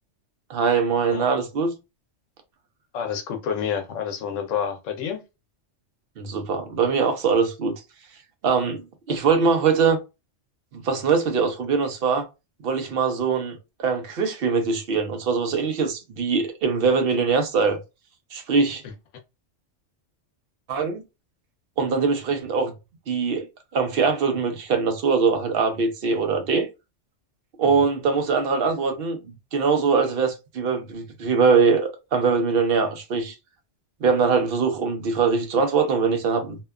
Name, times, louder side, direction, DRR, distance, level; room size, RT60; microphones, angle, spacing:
voice 1, 0.5-1.7 6.2-7.8 8.4-10.0 10.7-12.3 12.6-17.8 18.3-18.8 20.7-21.0 21.8-22.7 23.1-23.5 23.7-26.7 27.6-33.4 34.0-36.6, right 5 dB, 60° right, 0.7 m, -22 dB
voice 2, 2.9-5.2 9.3-9.4 18.8-18.9 27.6-27.9, left 7 dB, 85° left, 1.0 m, -29 dB
2.7 x 2.2 x 2.3 m
omnidirectional pair, 1.3 m